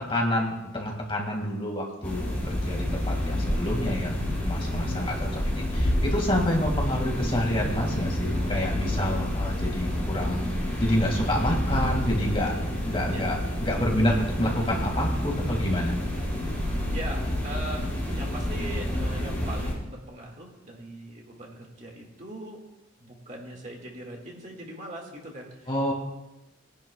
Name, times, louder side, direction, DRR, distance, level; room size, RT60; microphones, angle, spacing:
voice 1, 0.0-10.4 10.8-12.5 12.8-14.1 14.4-15.9 25.7-25.9, left 1 dB, 25° left, 0 dB, 2.1 m, -28 dB
sound 1, 2.0-19.7, equal, 5° left, 4.7 m, -29 dB
voice 2, 13.1-13.4 14.0-14.2 16.9-22.6 23.0-25.7, right 1 dB, 35° right, 0 dB, 2.0 m, -40 dB
21.0 x 10.5 x 2.3 m, 0.95 s
head